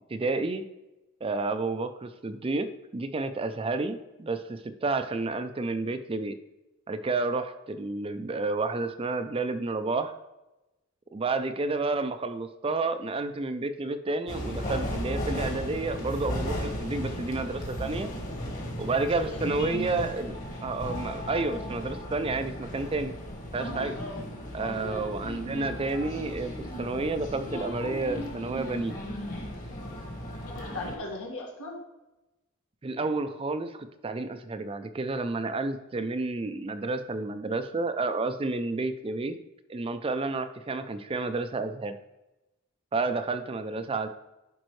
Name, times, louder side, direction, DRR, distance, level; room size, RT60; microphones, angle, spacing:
voice 1, 0.1-0.6 1.2-2.7 2.9-6.3 6.9-10.1 11.1-18.1 18.8-20.3 20.6-23.1 23.5-24.0 24.5-28.9 32.8-39.4 39.7-42.0 42.9-44.1, right 3 dB, 25° right, 10 dB, 0.4 m, -30 dB
sound 1, 14.3-31.0, equal, 40° left, 1.6 m, -35 dB
voice 2, 19.0-19.4 23.9-24.2 24.6-24.8 30.5-31.8 43.7-43.8, left 2 dB, 80° left, -1 dB, 1.8 m, -38 dB
10.5 x 5.3 x 3.2 m, 1.0 s
head